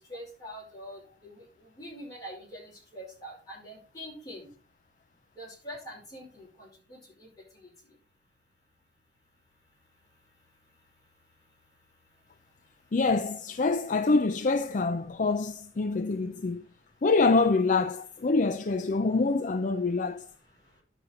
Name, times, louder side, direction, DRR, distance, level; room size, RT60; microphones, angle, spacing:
voice 1, 0.1-1.4 1.8-2.6 2.9-4.5 5.4-7.0, equal, 20° left, 5.1 m, -44 dB
voice 2, 12.9-16.6 17.0-20.3, left 3 dB, 45° left, 0.5 m, -26 dB
11.0 x 7.0 x 3.9 m
head